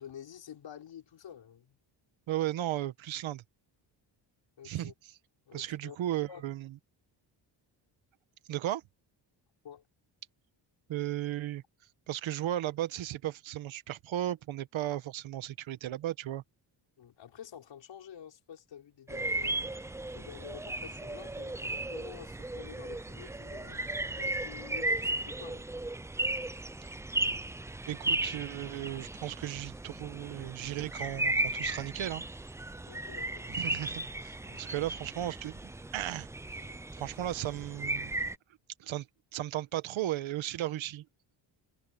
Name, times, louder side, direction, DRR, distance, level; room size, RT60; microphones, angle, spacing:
voice 1, 0.0-1.8 4.6-4.9 5.5-6.4 9.6-9.8 17.0-19.7 20.1-25.7 32.9-33.5 34.4-34.8, left 9 dB, 65° left, 5.2 m, -49 dB
voice 2, 2.3-3.4 4.6-4.9 5.5-6.7 8.5-8.8 10.9-11.6 12.1-16.4 27.9-32.2 33.5-36.3 36.6-38.1 38.8-39.1 39.3-41.0, right 13 dB, 80° right, 1.3 m, -35 dB
sound 1, 19.1-38.3, right 2 dB, 5° right, 0.4 m, -35 dB
cardioid pair, 110°, 46 cm